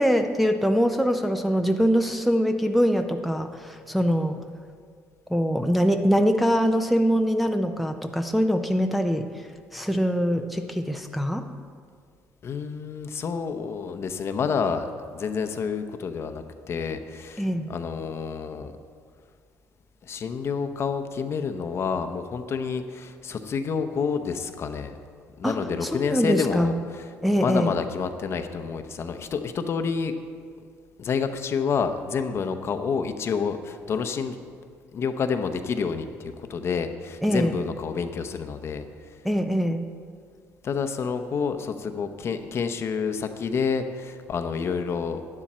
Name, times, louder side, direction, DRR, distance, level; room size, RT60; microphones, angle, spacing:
voice 1, 0.0-4.4 5.3-11.4 17.4-17.7 25.4-25.6 25.8-26.7 27.2-27.7 37.2-37.5 39.2-39.9, equal, ahead, 5 dB, 0.6 m, -23 dB
voice 2, 12.4-18.7 20.0-25.0 25.4-30.2 31.0-34.4 34.9-38.9 40.6-45.2, left 5 dB, 45° left, 8 dB, 0.8 m, -29 dB
11.0 x 9.9 x 4.3 m, 2.1 s
supercardioid pair, 85°, 6 cm